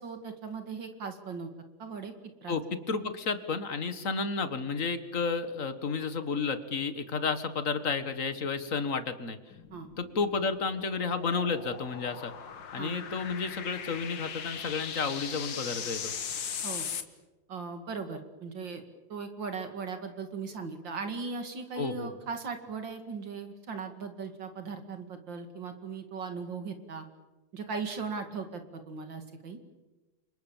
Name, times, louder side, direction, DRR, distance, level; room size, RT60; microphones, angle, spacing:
voice 1, 0.0-1.5 1.8-2.1 2.4-2.6 9.7-9.9 12.8-13.0 16.6-16.9 17.5-18.8 19.1-27.0 27.5-29.6, right 5 dB, 75° right, 7 dB, 2.9 m, -38 dB
voice 2, 2.5-9.4 10.0-12.3 12.7-16.1 21.8-22.2, left 5 dB, 45° left, 10 dB, 1.9 m, -32 dB
sound 1, 9.5-17.0, left 7 dB, 75° left, 2.2 m, -39 dB
30.0 x 25.0 x 7.3 m, 1.1 s
omnidirectional pair, 2.1 m